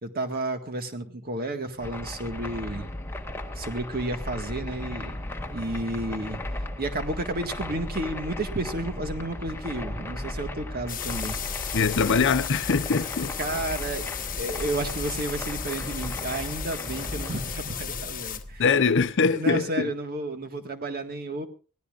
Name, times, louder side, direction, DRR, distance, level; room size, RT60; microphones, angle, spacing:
voice 1, 0.0-2.9 3.6-5.2 5.5-6.4 6.8-11.4 13.4-14.1 14.4-18.6 19.3-21.5, right 1 dB, 45° right, 1.8 m, -32 dB
sound 1, 1.8-19.1, left 1 dB, 10° left, 1.4 m, -36 dB
sound 2, 10.9-18.4, left 10 dB, 40° left, 1.1 m, -35 dB
voice 2, 11.7-13.4 18.6-19.9, left 5 dB, 55° left, 0.7 m, -23 dB
24.0 x 16.5 x 2.5 m
head